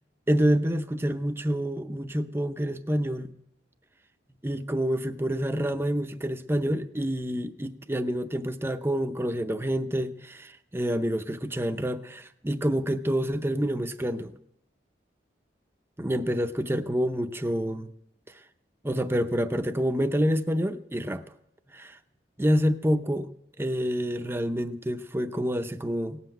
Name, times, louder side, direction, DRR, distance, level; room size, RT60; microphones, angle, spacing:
voice 1, 0.3-3.3 4.4-14.3 16.0-17.9 18.8-21.2 21.7-22.0 22.4-23.3 23.6-26.2, equal, 15° right, 0.6 m, -27 dB
17.5 x 7.8 x 9.3 m
head